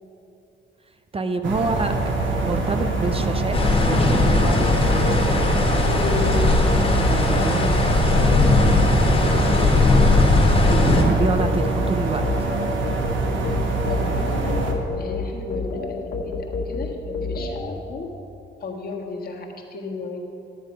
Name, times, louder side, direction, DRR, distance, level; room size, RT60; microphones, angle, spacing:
voice 1, 1.1-5.7 7.1-7.8 8.9-9.2 10.7-12.5, right 3 dB, 30° right, 8 dB, 0.6 m, -28 dB
sound 1, 1.4-14.7, right 3 dB, 70° right, 1.4 m, -24 dB
sound 2, 3.5-11.0, left 3 dB, 30° left, 1.7 m, -19 dB
sound 3, 4.6-17.8, left 3 dB, 65° left, 1.6 m, -31 dB
voice 2, 5.8-6.6 7.1-7.8 9.0-9.7 13.9-18.1 18.6-20.2, left 4 dB, 50° left, 1 dB, 1.6 m, -33 dB
12.0 x 7.4 x 5.3 m, 2.9 s
cardioid pair, 90°, 20 cm